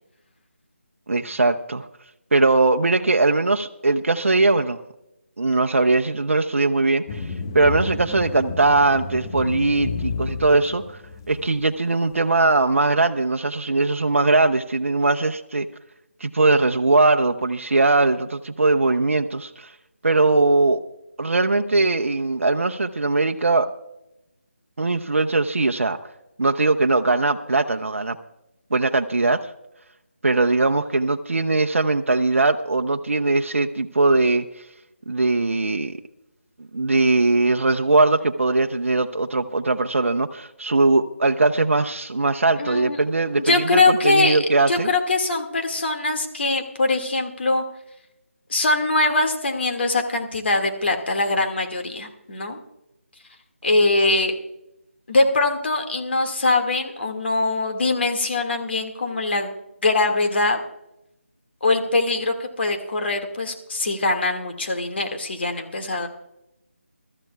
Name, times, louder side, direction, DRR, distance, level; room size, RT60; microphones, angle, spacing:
voice 1, 1.1-1.9 2.3-4.8 5.4-7.3 7.5-10.8 11.3-15.7 16.2-19.7 20.0-20.8 21.2-23.7 24.8-26.0 26.4-28.2 28.7-29.4 30.2-34.4 35.1-36.0 36.7-44.9, right 3 dB, 75° right, 5 dB, 0.8 m, -20 dB
sound 1, 7.1-11.6, left 4 dB, 20° left, 0.6 m, -31 dB
voice 2, 42.6-43.0 43.4-44.4 44.7-47.6 48.5-52.6 53.6-54.3 55.1-59.5 59.8-60.6 61.6-66.1, left 2 dB, 55° left, 3 dB, 2.0 m, -22 dB
21.5 x 13.5 x 2.3 m, 0.87 s
figure-of-eight pair, 160°, 7 cm